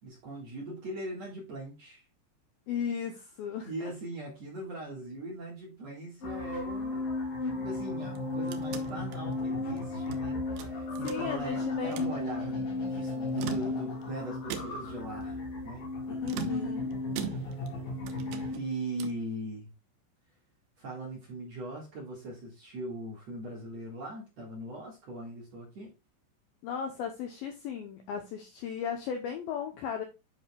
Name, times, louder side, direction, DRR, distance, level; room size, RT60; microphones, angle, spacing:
voice 1, 0.0-2.0 3.6-7.0 7.5-15.9 18.5-19.7 20.8-25.9, right 1 dB, 55° right, -2 dB, 2.0 m, -40 dB
voice 2, 2.7-3.9 11.0-12.1 16.1-16.9 26.6-30.0, left 8 dB, 80° left, 4 dB, 2.1 m, -36 dB
sound 1, 6.2-18.5, left 2 dB, 55° left, 3.9 m, -34 dB
sound 2, 8.0-10.2 10.6-11.5 11.8-12.2 13.2-14.1 14.5-15.0 16.2-17.8 18.1-19.3, right 8 dB, 90° right, 2.0 m, -41 dB
10.0 x 5.1 x 2.3 m, 0.26 s
omnidirectional pair, 5.1 m